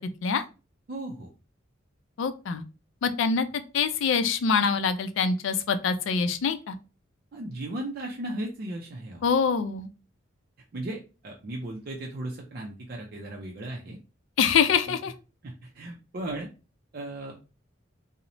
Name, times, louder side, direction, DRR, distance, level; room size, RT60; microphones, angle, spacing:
voice 1, 0.9-1.3 7.3-9.2 10.7-14.0 14.9-15.0 15.4-16.5 16.9-17.4, right 1 dB, 50° right, 0 dB, 0.4 m, -36 dB
voice 2, 2.2-2.6 3.0-3.5 3.7-6.7 9.2-9.9 14.4-15.1, left 6 dB, 80° left, 10 dB, 0.3 m, -24 dB
2.9 x 2.0 x 2.6 m, 0.32 s
head